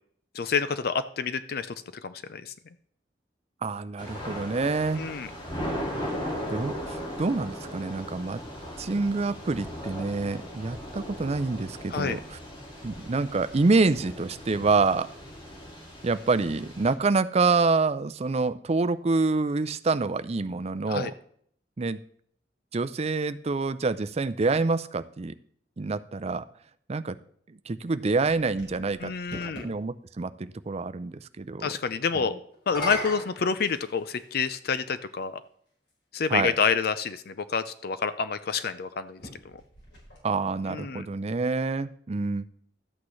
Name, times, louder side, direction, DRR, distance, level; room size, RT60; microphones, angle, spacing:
voice 1, 0.3-1.8 2.0-2.5 5.0-5.3 11.9-12.2 20.9-21.1 29.0-29.7 31.6-32.3 32.7-35.4 36.1-39.2 40.7-41.1, left 5 dB, 60° left, 12 dB, 0.5 m, -28 dB
voice 2, 3.6-5.0 6.5-8.4 8.8-12.2 12.8-15.1 16.0-21.1 21.8-22.0 22.7-25.3 25.8-26.5 26.9-27.2 27.5-29.1 29.4-31.7 32.1-32.3 36.3-36.6 40.2-42.5, right 3 dB, 35° right, 13 dB, 0.5 m, -27 dB
Thunder / Rain, 4.0-16.9, equal, 30° left, 2.1 m, -38 dB
sound 1, 28.3-29.7 32.5-34.3 35.3-35.4 39.1-40.6, left 1 dB, 90° left, 4.9 m, -39 dB
13.0 x 8.5 x 3.2 m, 0.63 s
head